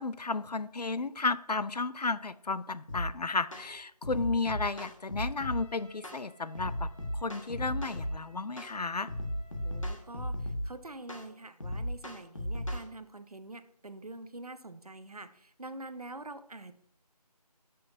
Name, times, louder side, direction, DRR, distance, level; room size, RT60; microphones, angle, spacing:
voice 1, 0.0-9.1, left 3 dB, 75° left, 15 dB, 0.5 m, -33 dB
sound 1, 2.9-3.1 3.5-3.7 4.0-5.6 6.0-6.2 6.6-8.2 8.6-8.8 9.1-10.7 11.1-11.3 11.6-12.9, equal, 50° left, 1.5 m, -35 dB
Trumpet, 5.4-10.1, left 1 dB, ahead, 3.3 m, -60 dB
voice 2, 9.5-16.7, right 2 dB, 65° right, 11 dB, 0.8 m, -45 dB
11.0 x 6.3 x 2.7 m, 0.71 s
figure-of-eight pair, 170°, 21 cm